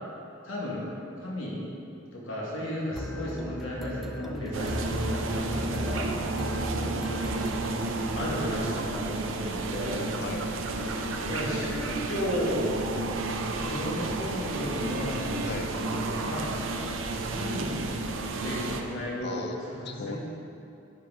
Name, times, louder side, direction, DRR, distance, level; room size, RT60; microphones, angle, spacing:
voice 1, 0.4-0.9 1.2-1.6 2.1-6.1 8.2-10.1 11.3-12.6 13.6-15.2 15.9-16.5 17.3-17.7 18.4-20.2, left 1 dB, 80° left, -5 dB, 1.9 m, -34 dB
voice 2, 2.9-3.3 6.6-7.2 10.2-10.5 15.5-15.8 19.2-20.2, left 3 dB, 55° left, 5 dB, 0.5 m, -39 dB
sound 1, 3.0-8.6, equal, ahead, 0.4 m, -36 dB
sound 2, 4.5-18.8, right 2 dB, 75° right, 0.6 m, -31 dB
11.0 x 4.8 x 3.8 m, 2.7 s
head